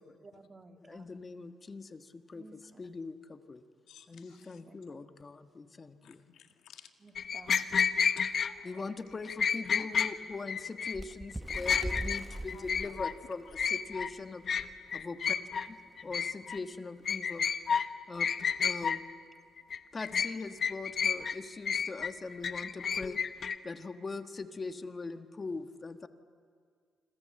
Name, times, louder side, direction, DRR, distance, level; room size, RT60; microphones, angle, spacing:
voice 1, 0.2-1.2 2.4-2.8 4.3-5.0 7.0-7.7, right 3 dB, 30° right, 5 dB, 2.1 m, -55 dB
voice 2, 0.8-3.6 4.1-6.2 7.7-7.8 8.6-14.4 14.9-15.4 15.7-15.8 16.0-17.4 18.1-18.3 18.6-19.0 19.9-23.2 23.6-26.1, left 3 dB, 30° left, 8 dB, 1.5 m, -41 dB
voice 3, 3.9-4.6 6.0-6.9 8.2-8.7 12.5-12.7, left 9 dB, 75° left, 6 dB, 1.8 m, -55 dB
sound 1, 7.2-8.5 9.3-10.1 10.5-10.9 11.3-12.2 12.5-13.1 13.6-14.1 14.5-14.7 14.9-15.7 16.0-16.6 17.1-17.9 18.2-19.0 19.6-20.3 20.6-21.3 21.7-23.6, left 7 dB, 50° left, 1.1 m, -30 dB
Bird, 10.9-14.1 14.6-14.7 15.0-15.3 16.1-16.2, right 1 dB, 10° right, 0.9 m, -41 dB
26.5 x 26.5 x 7.8 m, 2.1 s
cardioid pair, 90°, 0 cm